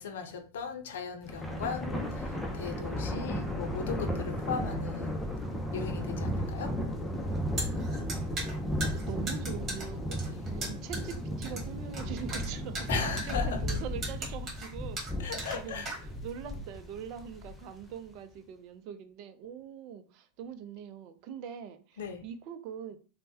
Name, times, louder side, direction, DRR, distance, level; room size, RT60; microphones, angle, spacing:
voice 1, 0.0-5.2 5.7-6.8 10.4-10.5 12.9-13.6 15.2-15.9 22.0-22.2, left 6 dB, 70° left, 0.6 m, -37 dB
Thunder, 1.2-17.8, equal, 10° left, 0.6 m, -35 dB
voice 2, 2.6-3.0 9.1-15.0 15.3-23.0, right 8 dB, 50° right, 0.5 m, -43 dB
sound 1, 7.2-16.4, right 2 dB, 30° right, 1.5 m, -39 dB
3.2 x 2.1 x 2.7 m
hypercardioid pair, 100°, 0 cm